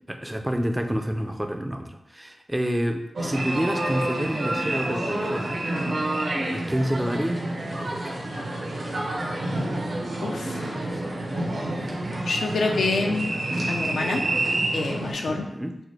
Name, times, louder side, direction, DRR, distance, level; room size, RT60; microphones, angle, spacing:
voice 1, 0.1-5.7 6.5-7.5 7.8-8.2 11.2-11.3 11.8-12.2 15.3-15.8, equal, 10° right, 5 dB, 0.4 m, -29 dB
sound 1, 3.1-15.1, right 1 dB, 70° right, 1.0 m, -28 dB
voice 2, 10.2-10.6 12.3-13.4 13.7-14.2 14.7-15.5, left 3 dB, 85° left, 2 dB, 0.5 m, -26 dB
5.9 x 2.1 x 3.2 m, 0.84 s
cardioid pair, 70°, 0 cm